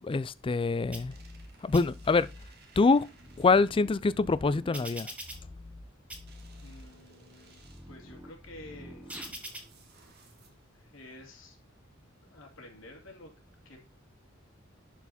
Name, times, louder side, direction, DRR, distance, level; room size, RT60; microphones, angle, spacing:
voice 1, 0.0-1.2 1.6-2.3 2.8-3.1 3.4-5.1, left 4 dB, 25° left, 0.4 m, -25 dB
sound 1, 0.7-3.8 6.3-8.1 9.1-10.8, right 4 dB, 55° right, 1.8 m, -60 dB
sound 2, 0.9-1.4 1.7-2.4 3.0-5.8 6.1-6.8 7.4-9.6, equal, 5° right, 1.4 m, -45 dB
voice 2, 6.6-9.2 9.8-9.9 10.7-11.6 12.2-13.3 13.6-13.8, left 1 dB, 75° left, 2.5 m, -50 dB
11.0 x 4.6 x 4.2 m
head